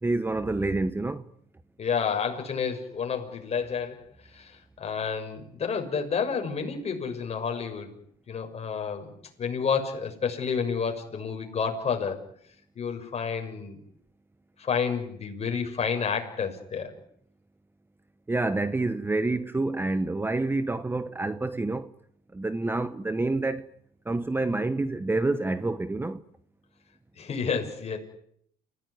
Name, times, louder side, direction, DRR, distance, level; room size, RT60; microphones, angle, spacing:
voice 1, 0.0-1.3 18.3-21.9 22.3-23.7 24.1-26.2, right 2 dB, 15° right, 1.0 m, -28 dB
voice 2, 1.8-7.9 8.3-9.1 9.4-12.2 12.7-13.8 14.6-16.9 27.2-28.0, left 6 dB, 40° left, 6.5 m, -30 dB
29.5 x 17.0 x 9.8 m
cardioid pair, 110°, 17 cm